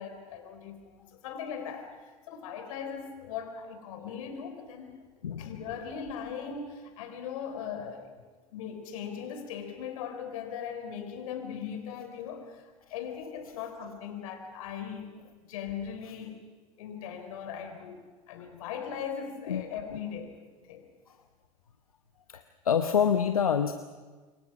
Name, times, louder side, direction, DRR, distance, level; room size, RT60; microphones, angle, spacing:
voice 1, 0.0-5.0 5.4-8.2 8.5-15.1 15.5-16.4 16.8-20.3 20.7-20.9, left 7 dB, 70° left, 7 dB, 3.9 m, -39 dB
voice 2, 22.3-23.7, left 7 dB, 90° left, 9 dB, 0.9 m, -26 dB
27.0 x 23.0 x 6.0 m, 1.4 s
hypercardioid pair, 80°, 18 cm